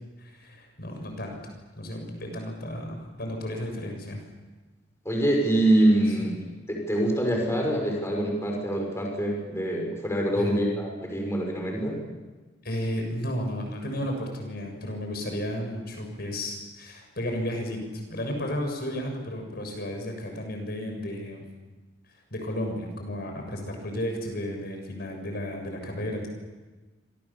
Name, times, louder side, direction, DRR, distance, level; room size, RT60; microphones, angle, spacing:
voice 1, 0.2-1.4 1.8-4.2 10.3-10.5 12.6-17.8 18.1-21.4 22.3-26.3, equal, 60° left, 3 dB, 6.8 m, -33 dB
voice 2, 5.0-6.4 6.7-12.0, right 1 dB, 15° left, 0 dB, 6.3 m, -25 dB
27.0 x 26.5 x 7.3 m, 1.2 s
head